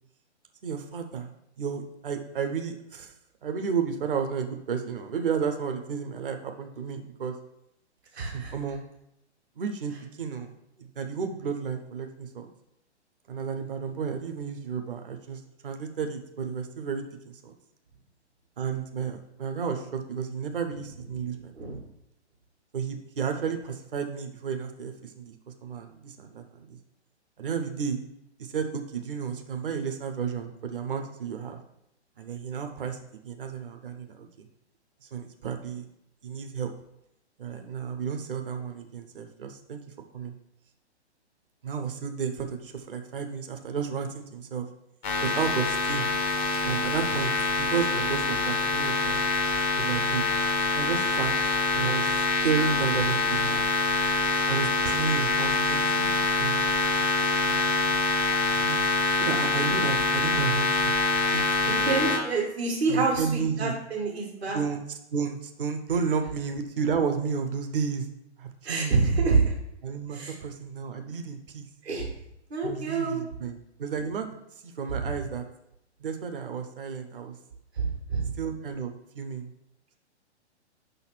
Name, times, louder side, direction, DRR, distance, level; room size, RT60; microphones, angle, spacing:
voice 1, 0.6-1.3 1.6-3.1 3.4-7.3 8.3-8.8 9.6-10.5 10.8-12.5 13.3-17.5 18.6-21.8 22.7-25.3 25.6-26.4 26.7-26.8 27.4-28.0 28.4-31.6 32.2-33.0 33.2-34.5 35.1-35.8 36.2-36.7 37.4-39.8 40.1-40.3 41.6-44.7 45.2-46.1 46.6-49.2 49.8-50.2 50.8-51.3 51.7-53.7 54.5-56.6 57.0-57.1 57.4-57.9 58.6-58.9 59.2-60.9 61.3-61.7 62.9-63.7 64.5-64.8 65.1-68.1 68.4-69.0 69.8-71.7 72.6-74.3 74.6-75.4 76.0-77.4 78.4-79.5, right 6 dB, 50° right, 6 dB, 1.0 m, -32 dB
voice 2, 8.1-8.5 21.6-21.8 61.7-64.6 68.6-69.4 70.1-70.3 71.8-72.1 72.5-73.2 74.9-75.1 77.8-78.3, right 4 dB, 65° right, -5 dB, 2.0 m, -27 dB
sound 1, 45.0-62.2, left 3 dB, 5° left, 0.3 m, -25 dB
5.9 x 4.1 x 6.0 m, 0.80 s
figure-of-eight pair, 120°, 34 cm